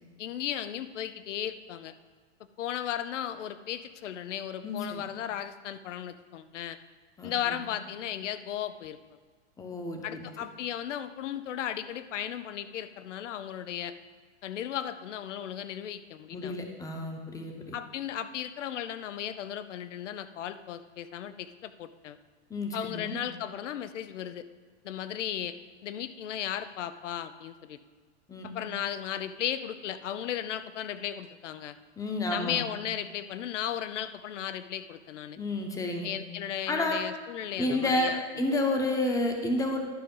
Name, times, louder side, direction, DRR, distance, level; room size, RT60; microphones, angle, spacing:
voice 1, 0.2-1.9 2.6-6.8 7.2-9.0 10.0-13.9 14.4-16.5 17.7-22.2 22.7-24.5 24.8-25.5 25.8-27.8 28.4-31.8 32.3-35.4 36.0-38.2, left 10 dB, 85° left, 13 dB, 0.7 m, -35 dB
voice 2, 4.6-5.0 7.2-7.7 9.6-10.2 16.3-17.7 22.5-23.2 28.3-28.5 32.0-32.7 35.4-36.1 36.7-37.0 37.6-39.8, left 2 dB, 10° left, 3 dB, 0.9 m, -30 dB
11.5 x 4.9 x 5.4 m, 1.5 s
hypercardioid pair, 140°, 36 cm